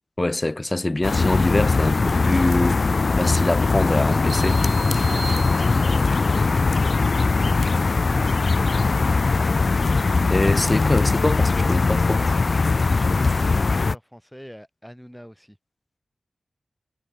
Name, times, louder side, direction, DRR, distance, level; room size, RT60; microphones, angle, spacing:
voice 1, 0.2-2.8 3.2-4.6 10.3-12.3, left 2 dB, 25° left, 0.4 m, -24 dB
sound 1, 1.0-13.9, left 3 dB, 55° left, 0.8 m, -20 dB
sound 2, 4.3-6.2, right 5 dB, 80° right, 3.7 m, -38 dB
voice 2, 5.1-7.2 7.6-9.2 12.8-15.6, equal, ahead, 3.8 m, -43 dB
wide cardioid pair, 100°, 0 cm